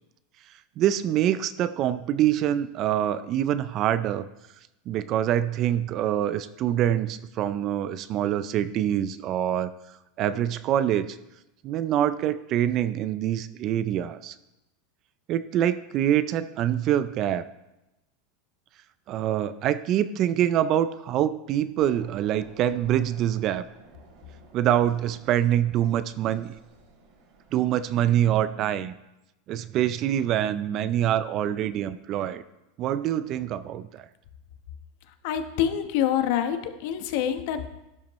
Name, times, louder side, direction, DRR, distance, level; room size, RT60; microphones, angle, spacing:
voice 1, 0.8-4.3 4.9-9.7 10.2-11.2 11.6-14.4 15.3-17.4 19.1-23.7 24.5-26.5 27.5-28.9 29.5-32.4 32.8-34.1, right 11 dB, 40° right, 14 dB, 0.4 m, -25 dB
sound 1, 21.8-27.9, right 3 dB, 60° right, 2.4 m, -53 dB
voice 2, 35.2-37.7, left 10 dB, 60° left, 8 dB, 1.0 m, -26 dB
12.0 x 10.0 x 3.1 m, 0.94 s
supercardioid pair, 150°, 0 cm